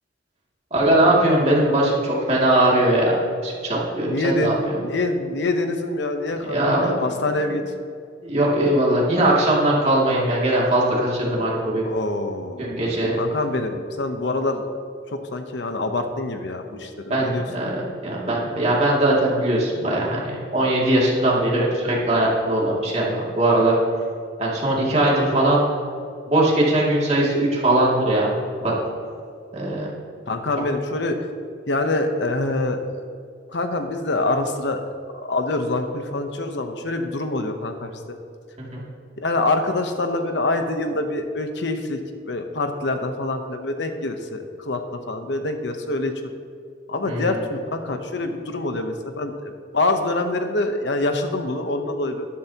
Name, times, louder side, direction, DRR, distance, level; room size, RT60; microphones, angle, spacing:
voice 1, 0.7-3.2 3.4-4.8 6.5-7.0 8.2-11.9 12.6-13.1 17.1-23.8 24.4-25.6 26.3-28.3 28.6-28.7 29.5-29.9 38.7-38.8 47.1-47.4, right 1 dB, 35° right, -5 dB, 2.4 m, -20 dB
voice 2, 4.1-7.6 11.8-12.6 13.2-14.7 15.1-16.9 17.2-17.4 30.3-31.2 31.7-32.8 33.5-34.9 35.1-38.2 39.2-42.0 42.2-44.8 45.1-46.3 46.9-52.3, left 2 dB, 70° left, 6 dB, 0.9 m, -25 dB
13.0 x 11.5 x 2.9 m, 2.3 s
head